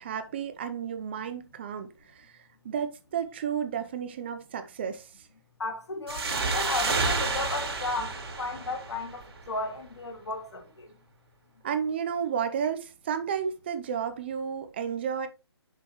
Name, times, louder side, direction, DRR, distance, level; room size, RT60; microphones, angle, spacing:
voice 1, 0.0-2.3 2.6-5.1 11.6-15.3, right 7 dB, 25° right, 0.6 m, -32 dB
voice 2, 5.6-10.9, left 3 dB, 85° left, 3.0 m, -34 dB
sound 1, 6.1-9.5, right 4 dB, 65° right, 3.4 m, -30 dB
6.8 x 6.3 x 3.0 m
hypercardioid pair, 170°, 14 cm